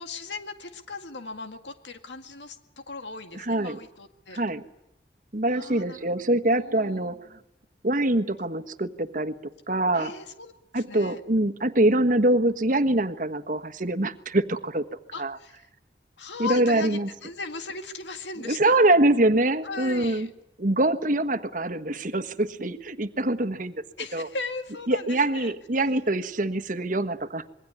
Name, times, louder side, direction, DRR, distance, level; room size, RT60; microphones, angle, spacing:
voice 1, 0.0-4.4 5.5-6.1 6.5-7.2 9.9-11.2 15.1-15.7 16.2-18.8 19.6-20.3 24.0-25.5, left 4 dB, 90° left, 7 dB, 2.0 m, -38 dB
voice 2, 3.5-3.8 4.3-4.6 5.3-7.2 7.8-9.3 9.7-10.1 10.7-14.8 15.2-15.3 16.4-17.1 18.5-20.3 20.6-23.7 24.1-24.3 24.9-27.5, right 1 dB, 50° right, 10 dB, 1.4 m, -24 dB
26.5 x 22.0 x 9.6 m, 0.82 s
head